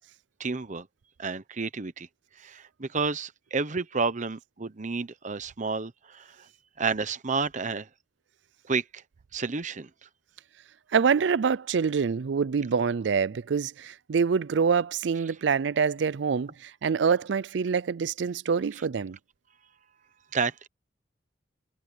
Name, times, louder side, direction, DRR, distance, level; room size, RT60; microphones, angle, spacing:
voice 1, 0.4-0.9 1.2-2.1 2.4-6.3 6.8-7.9 8.7-9.0 9.3-9.9 20.3-20.7, right 4 dB, 45° right, 0.9 m, -30 dB
voice 2, 10.9-19.2, right 6 dB, 70° right, 0.4 m, -26 dB
head